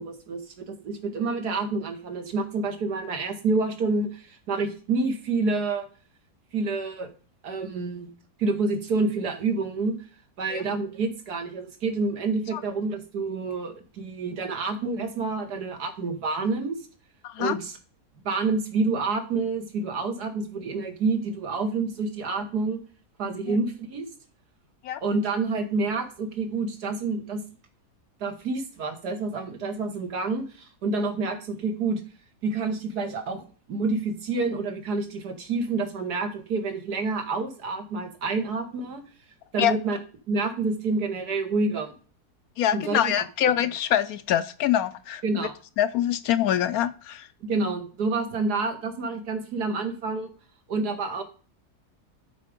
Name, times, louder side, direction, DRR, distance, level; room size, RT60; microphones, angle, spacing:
voice 1, 0.0-5.9 6.5-7.1 7.4-8.1 8.4-10.0 10.4-16.8 17.4-17.8 18.3-22.8 23.2-24.1 25.0-27.4 28.2-32.0 32.4-33.4 33.7-39.0 39.5-40.0 40.3-41.9 42.7-43.1 45.2-45.5 47.4-50.3 50.7-51.2, right 3 dB, 80° right, 5 dB, 2.0 m, -28 dB
voice 2, 17.2-17.6 23.5-23.6 24.8-25.0 39.6-39.7 42.6-45.5 45.8-47.3, left 11 dB, 70° left, 13 dB, 1.0 m, -25 dB
11.5 x 4.9 x 5.2 m, 0.40 s
omnidirectional pair, 1.7 m